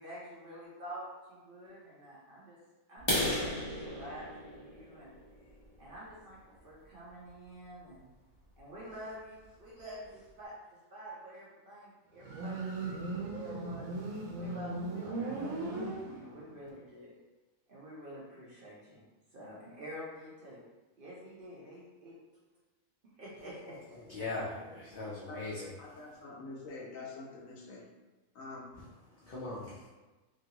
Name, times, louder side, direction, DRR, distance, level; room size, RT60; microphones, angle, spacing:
voice 1, 0.0-2.6 2.9-5.2 5.8-8.1 8.6-13.0 13.3-13.9 14.3-17.1 17.7-19.0 19.3-20.6 21.0-22.1 23.0-24.0, equal, 50° right, -6 dB, 0.8 m, -48 dB
sound 1, 3.0-6.7 7.3-7.5 7.9-8.0 8.4-8.6 8.9-9.0 9.5-9.6 9.8-10.3, left 1 dB, 25° left, 0.8 m, -36 dB
Motorcycle, 12.2-16.5, right 2 dB, 85° right, 1.0 m, -38 dB
voice 2, 24.1-25.7 29.1-29.9, left 2 dB, 55° left, -7 dB, 0.7 m, -40 dB
voice 3, 25.8-27.8 28.3-28.7, left 3 dB, 75° left, -2 dB, 1.1 m, -46 dB
3.0 x 2.6 x 2.8 m, 1.2 s
omnidirectional pair, 1.4 m